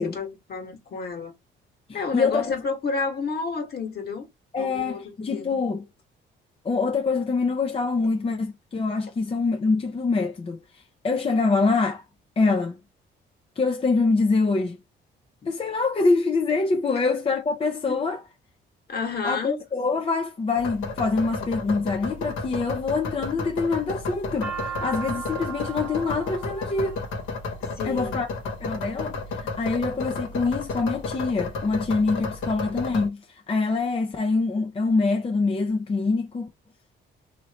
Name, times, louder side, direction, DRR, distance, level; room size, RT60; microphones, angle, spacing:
voice 1, 0.0-1.3 1.9-4.3 4.6-5.5 16.9-17.0 17.9-18.0 18.9-19.6 27.8-28.2, left 4 dB, 50° left, 1.5 m, -31 dB
voice 2, 1.9-2.6 4.5-5.8 6.6-12.0 12.4-12.8 13.6-14.8 15.4-18.2 19.2-27.0 27.8-28.3 28.6-36.5, left 4 dB, 30° left, 0.6 m, -25 dB
sound 1, 20.5-33.1, left 3 dB, 80° left, 1.3 m, -32 dB
sound 2, 24.0-28.2 29.0-29.5 30.1-30.8 31.1-31.2 31.4-32.2, right 7 dB, 5° right, 1.0 m, -37 dB
3.1 x 2.8 x 2.8 m
cardioid pair, 90°, 20 cm